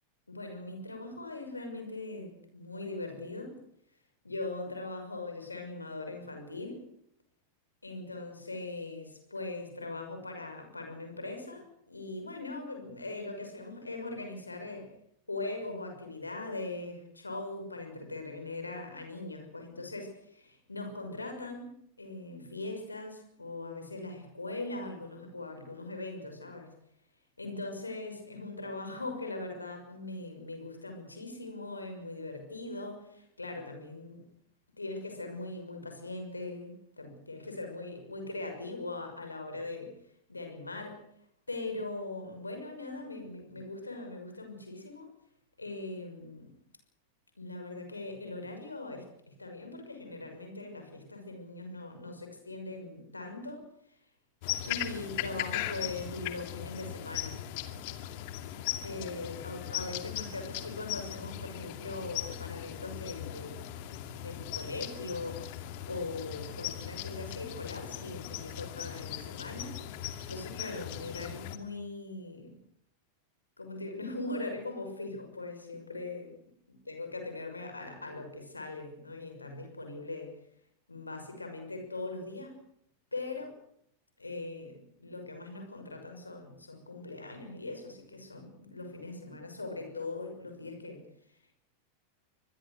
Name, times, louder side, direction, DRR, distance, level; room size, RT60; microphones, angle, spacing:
voice 1, 0.3-3.6 4.2-6.8 7.8-14.9 15.3-21.7 22.0-26.7 27.4-34.2 34.8-40.0 40.3-41.0 41.5-45.1 45.6-46.5 47.4-54.0 54.7-57.4 58.8-63.7 64.1-69.9 70.3-72.6 73.6-76.3 76.9-80.3 80.9-82.6 83.1-83.6 84.2-91.0 91.3-91.6, left 2 dB, 80° left, 5 dB, 6.2 m, -40 dB
sound 1, 54.4-71.6, left 12 dB, 50° left, 2.4 m, -39 dB
25.0 x 21.5 x 6.5 m, 0.71 s
figure-of-eight pair, 90°, 0 cm